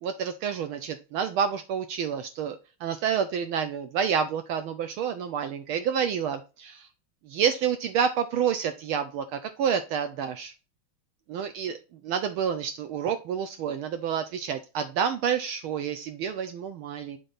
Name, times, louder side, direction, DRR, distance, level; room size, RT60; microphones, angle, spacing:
voice 1, 0.0-2.6 2.8-6.9 7.3-10.5 11.3-11.8 12.0-17.2, right 7 dB, 75° right, 8 dB, 1.5 m, -29 dB
8.8 x 3.6 x 3.9 m, 0.31 s
omnidirectional pair, 2.4 m